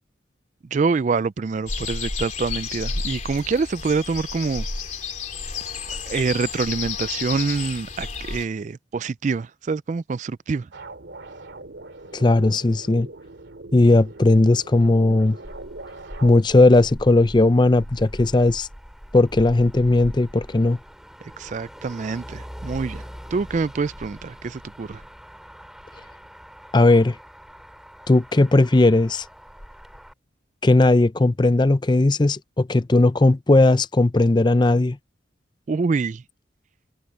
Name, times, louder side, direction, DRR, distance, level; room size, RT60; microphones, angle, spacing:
voice 1, 0.7-4.7 6.1-10.7 21.4-23.0 23.3-25.0 35.7-36.2, right 4 dB, 40° right, 0.3 m, -26 dB
sound 1, 1.7-8.5, left 5 dB, 40° left, 3.4 m, -31 dB
sound 2, 10.7-16.3, right 2 dB, 70° right, 2.4 m, -41 dB
voice 2, 12.1-13.1 13.7-15.4 16.2-18.7 19.1-20.8 26.7-27.2 28.1-29.3 30.6-35.0, left 2 dB, 25° left, 0.5 m, -17 dB
Motor vehicle (road), 15.4-30.1, equal, ahead, 3.1 m, -42 dB
head